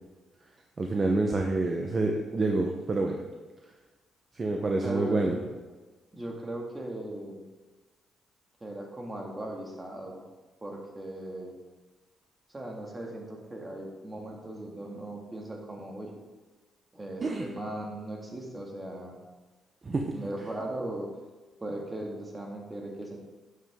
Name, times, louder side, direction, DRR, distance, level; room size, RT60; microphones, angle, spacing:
voice 1, 0.8-3.2 4.3-5.4 17.2-17.4 19.8-20.2, right 2 dB, 35° right, 2 dB, 0.9 m, -27 dB
voice 2, 4.8-5.4 6.1-7.4 8.6-10.2 10.6-11.5 12.5-16.1 16.9-19.2 20.1-21.1 21.6-23.2, right 1 dB, 20° right, 0 dB, 2.1 m, -38 dB
9.7 x 7.3 x 3.7 m, 1.3 s
cardioid pair, 90°, 0 cm